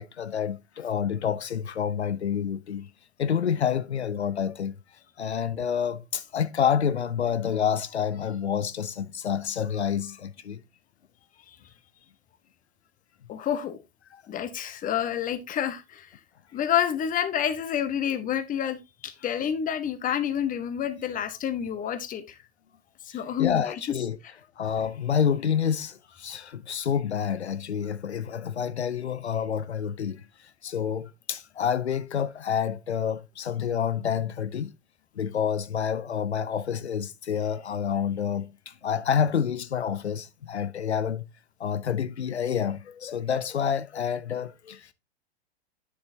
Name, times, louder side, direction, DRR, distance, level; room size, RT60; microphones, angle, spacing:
voice 1, 0.0-2.9 3.2-4.7 5.2-10.6 14.1-14.2 21.3-21.4 23.1-24.2 24.6-34.7 35.2-41.3 41.6-44.9, left 8 dB, 85° left, 0.7 m, -28 dB
voice 2, 13.3-13.8 14.3-16.1 16.5-22.2 23.1-23.6, left 9 dB, 25° left, 1.3 m, -28 dB
9.3 x 7.2 x 2.7 m
hypercardioid pair, 100°, 32 cm